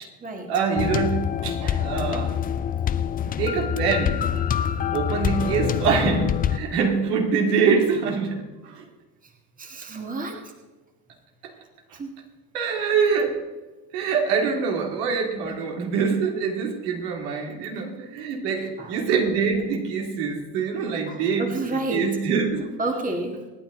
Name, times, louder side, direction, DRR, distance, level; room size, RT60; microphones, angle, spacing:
voice 1, 0.5-2.4 3.4-4.3 4.9-8.9 11.4-11.5 11.9-12.0 12.5-13.4 13.9-22.7, right 5 dB, 75° right, 1 dB, 3.2 m, -25 dB
sound 1, 0.8-6.6, left 9 dB, 20° left, 0.4 m, -25 dB
voice 2, 9.6-10.5 11.9-12.1 17.7-17.8 18.8-19.0 21.1-22.1 22.8-23.5, right 2 dB, 15° right, 3 dB, 1.9 m, -30 dB
25.5 x 9.3 x 4.0 m, 1.2 s
supercardioid pair, 110°, 49 cm